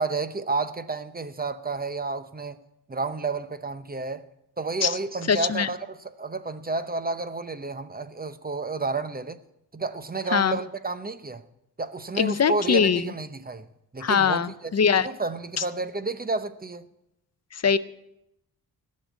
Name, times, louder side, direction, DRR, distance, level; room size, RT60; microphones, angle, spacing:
voice 1, 0.0-2.6 2.9-4.2 4.6-9.4 9.7-11.4 11.8-13.7 13.9-16.8, right 3 dB, 25° right, 0.7 m, -31 dB
voice 2, 5.3-5.7 10.3-10.6 12.2-13.1 14.0-15.1 15.6-15.7 17.5-17.8, left 7 dB, 40° left, 0.6 m, -22 dB
16.5 x 6.6 x 8.2 m
wide cardioid pair, 100°, 39 cm